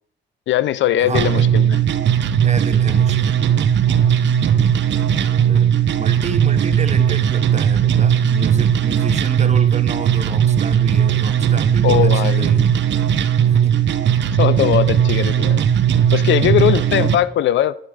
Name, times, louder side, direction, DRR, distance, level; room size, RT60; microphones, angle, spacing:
voice 1, 0.5-1.8 3.9-4.1 11.8-12.7 14.3-15.6 16.1-17.8, left 12 dB, 75° left, 0.4 m, -19 dB
voice 2, 1.0-1.5 2.4-3.4 4.4-4.6 5.1-12.6 13.5-14.0 16.8-17.1, right 5 dB, 35° right, 0.7 m, -30 dB
sound 1, 1.1-17.1, right 8 dB, 70° right, 0.6 m, -17 dB
10.0 x 4.4 x 4.9 m
cardioid pair, 75°, 19 cm